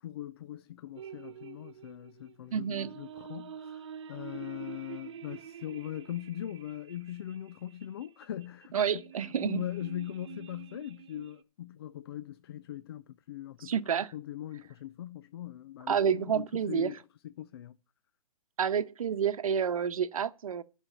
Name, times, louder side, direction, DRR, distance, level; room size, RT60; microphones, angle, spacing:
voice 1, 0.0-13.7 14.1-17.0 17.2-17.8, left 12 dB, 40° left, 0.5 m, -41 dB
sound 1, 1.0-11.4, right 9 dB, 50° right, 1.1 m, -47 dB
voice 2, 2.5-2.9 8.7-9.6 13.6-14.1 15.9-16.9 18.6-20.6, right 7 dB, 65° right, 1.0 m, -29 dB
11.0 x 6.2 x 7.6 m
hypercardioid pair, 150°, 19 cm